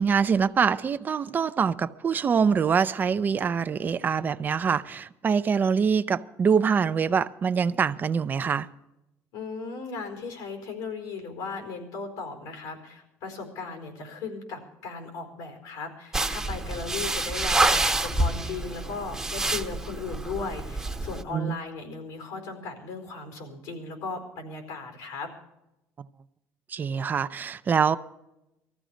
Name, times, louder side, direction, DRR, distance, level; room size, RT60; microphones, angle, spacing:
voice 1, 0.0-8.7 21.3-21.6 26.7-28.0, right 6 dB, 30° right, 0.5 m, -24 dB
voice 2, 9.3-25.3, left 4 dB, 90° left, 4.5 m, -37 dB
sound 1, 16.1-21.2, right 2 dB, 10° right, 1.0 m, -27 dB
19.0 x 14.5 x 5.1 m
cardioid pair, 125°, 6 cm